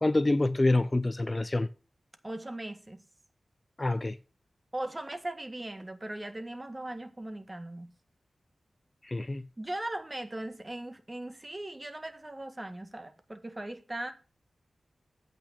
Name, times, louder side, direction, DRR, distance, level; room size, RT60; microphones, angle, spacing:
voice 1, 0.0-1.7 3.8-4.2 9.0-9.5, left 2 dB, 30° left, 0.5 m, -26 dB
voice 2, 2.2-3.0 4.7-7.9 9.6-14.1, right 1 dB, 25° right, 1.7 m, -39 dB
8.3 x 6.2 x 6.6 m
cardioid pair, 50°, 0 cm